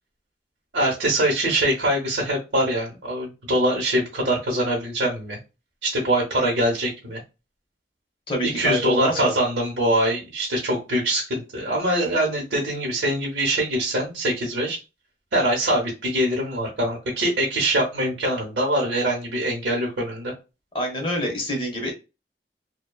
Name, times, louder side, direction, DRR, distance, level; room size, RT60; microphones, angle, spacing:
voice 1, 0.7-5.4 5.8-7.2 8.4-14.8 15.3-20.3, right 1 dB, 80° right, -3 dB, 0.9 m, -23 dB
voice 2, 8.3-9.3 20.7-21.9, left 1 dB, 30° left, 1 dB, 0.8 m, -26 dB
2.8 x 2.2 x 2.2 m, 0.28 s
head